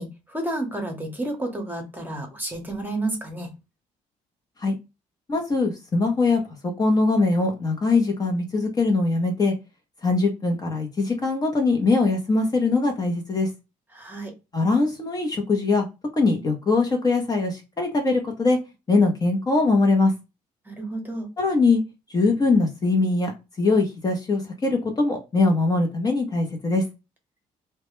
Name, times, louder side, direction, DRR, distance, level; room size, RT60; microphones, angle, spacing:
voice 1, 0.0-3.5 13.9-14.3 20.7-21.3, right 1 dB, 15° right, 0.9 m, -31 dB
voice 2, 5.3-6.4 6.8-9.5 10.0-13.5 14.5-15.9 16.2-18.6 18.9-20.1 21.4-21.8 22.1-23.3 23.6-26.8, left 3 dB, 30° left, 0.7 m, -22 dB
2.2 x 2.1 x 2.9 m
cardioid pair, 105°, 14 cm